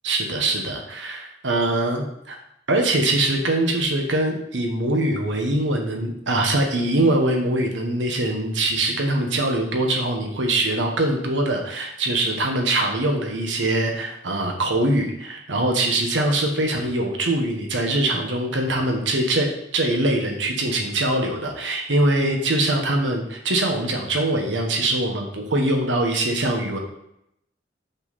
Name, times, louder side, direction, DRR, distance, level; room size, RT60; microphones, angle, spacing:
voice 1, 0.0-2.4 2.7-26.8, right 1 dB, 85° right, 2 dB, 1.2 m, -23 dB
5.9 x 5.4 x 4.1 m, 0.80 s
head